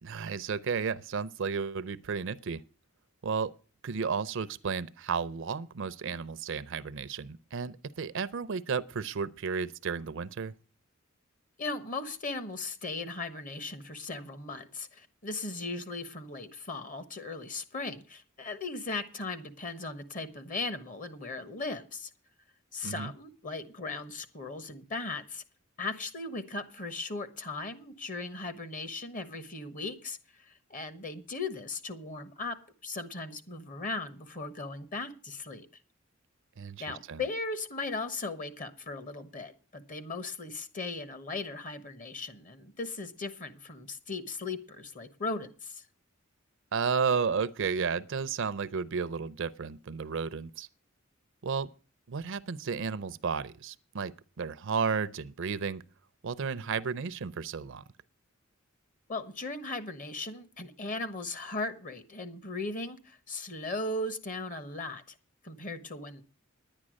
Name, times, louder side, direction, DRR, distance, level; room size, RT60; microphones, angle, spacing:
voice 1, 0.0-2.6 3.2-3.5 3.8-10.5 22.8-23.1 36.6-37.2 46.7-50.7 51.4-51.7 52.1-55.8 56.2-57.8, right 5 dB, 65° right, 0.5 m, -33 dB
voice 2, 11.6-22.1 22.7-25.4 25.8-32.6 32.8-35.7 36.8-45.8 59.1-65.1 65.4-66.2, left 3 dB, 40° left, 1.2 m, -38 dB
10.5 x 9.8 x 6.3 m
head